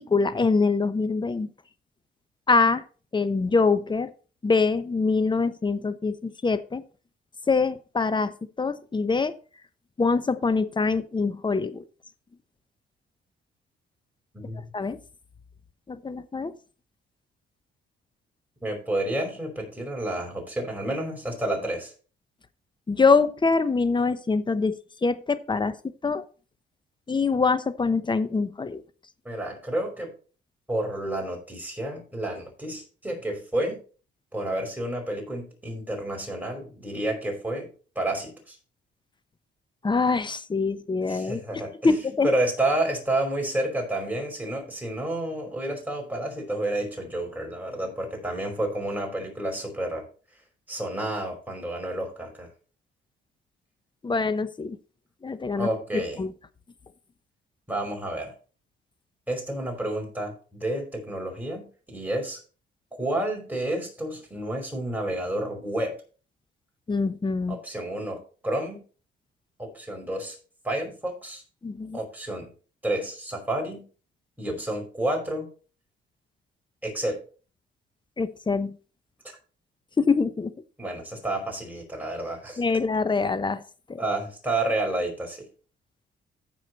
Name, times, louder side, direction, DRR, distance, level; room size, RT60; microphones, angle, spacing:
voice 1, 0.0-1.5 2.5-2.8 3.1-4.1 4.4-6.8 7.5-9.3 10.0-11.8 14.7-15.0 15.9-16.5 22.9-25.7 26.0-26.2 27.1-28.8 39.8-42.3 54.0-54.8 55.2-55.7 55.9-56.3 66.9-67.6 71.6-72.0 78.2-78.8 80.0-80.5 82.6-83.6 83.9-84.0, left 4 dB, 25° left, 13 dB, 0.9 m, -24 dB
voice 2, 18.6-21.9 29.3-30.1 30.7-33.8 34.3-38.6 41.1-42.0 42.2-50.1 50.7-52.5 55.6-56.2 57.7-58.3 59.3-62.4 63.0-65.9 67.5-68.8 69.6-70.4 70.6-71.4 71.9-72.5 72.8-73.8 74.4-75.5 76.8-77.2 80.8-82.6 84.0-85.5, right 1 dB, 10° right, 1 dB, 5.2 m, -30 dB
15.0 x 5.0 x 4.1 m, 0.38 s
cardioid pair, 90°, 20 cm